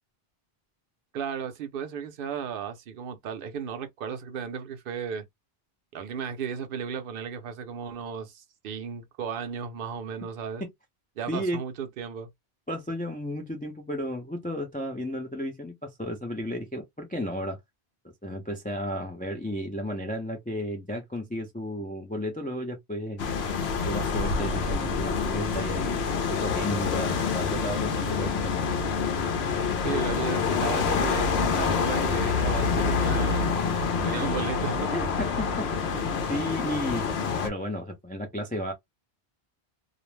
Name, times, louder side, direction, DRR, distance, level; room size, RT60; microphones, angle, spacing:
voice 1, 1.1-5.2 5.9-10.6 11.2-12.3 29.8-33.6 34.0-35.0 35.9-36.1, right 7 dB, 65° right, 0.7 m, -35 dB
voice 2, 11.3-11.6 12.7-17.6 18.2-23.3 23.8-26.0 26.3-28.7 34.2-34.5 34.9-37.1 37.4-38.7, equal, 15° left, 0.3 m, -33 dB
sound 1, 23.2-37.5, left 5 dB, 75° left, 0.9 m, -27 dB
2.5 x 2.0 x 3.0 m
omnidirectional pair, 1.1 m